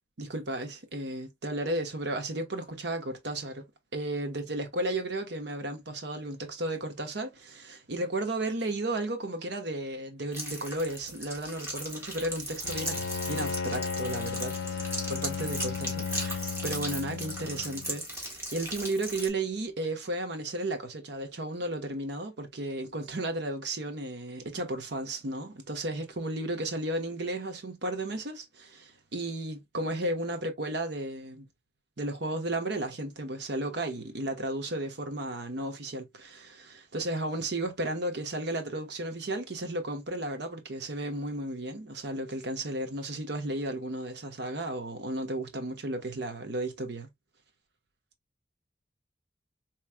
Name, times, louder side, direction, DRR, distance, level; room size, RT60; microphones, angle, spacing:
voice 1, 0.2-3.6 3.9-31.5 32.0-47.1, right 1 dB, 65° right, 1.0 m, -34 dB
sound 1, 10.3-19.3, right 1 dB, 15° right, 1.6 m, -38 dB
Bowed string instrument, 12.6-18.0, left 5 dB, 80° left, 0.5 m, -35 dB
4.6 x 3.1 x 2.2 m
head